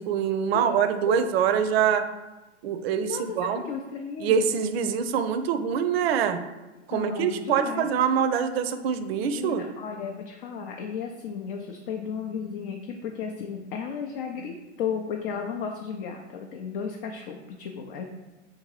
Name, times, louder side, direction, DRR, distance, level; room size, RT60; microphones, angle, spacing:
voice 1, 0.0-2.1 2.6-3.6 4.2-6.4 6.9-9.6, right 7 dB, 60° right, 10 dB, 0.5 m, -24 dB
voice 2, 3.0-4.5 6.9-7.9 9.4-18.0, left 7 dB, 45° left, 2 dB, 0.5 m, -34 dB
3.7 x 2.7 x 4.7 m, 1.1 s
hypercardioid pair, 120°, 36 cm